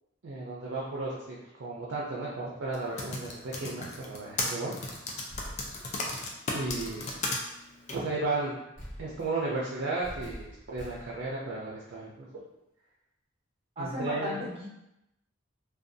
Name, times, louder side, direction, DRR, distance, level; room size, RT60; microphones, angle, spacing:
voice 1, 0.2-4.7 6.5-7.1 7.9-8.6 9.0-12.3 13.8-14.4, right 2 dB, 65° right, -5 dB, 0.4 m, -34 dB
Typing, 2.7-7.4 7.9-8.0, left 2 dB, 35° left, 0.3 m, -33 dB
sound 1, 5.3-6.2 6.7-7.2 8.8-9.5 10.0-11.3, equal, 75° left, 1.1 m, -45 dB
voice 2, 13.8-14.7, equal, 30° right, -6 dB, 0.7 m, -35 dB
2.5 x 2.2 x 2.5 m, 0.89 s
head